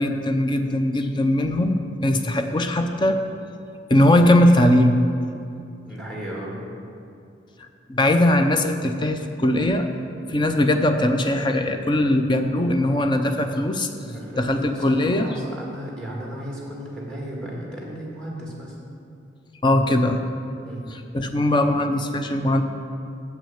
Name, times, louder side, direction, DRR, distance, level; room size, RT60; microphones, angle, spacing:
voice 1, 0.0-3.2 3.9-5.0 7.9-9.9 10.3-13.9 14.4-15.3 19.6-20.2 20.9-22.6, left 1 dB, 25° left, 6 dB, 0.5 m, -20 dB
voice 2, 5.9-6.6 14.0-18.8 19.7-20.0 20.6-20.9, equal, 5° left, -3 dB, 1.7 m, -35 dB
7.5 x 6.1 x 7.1 m, 2.6 s
head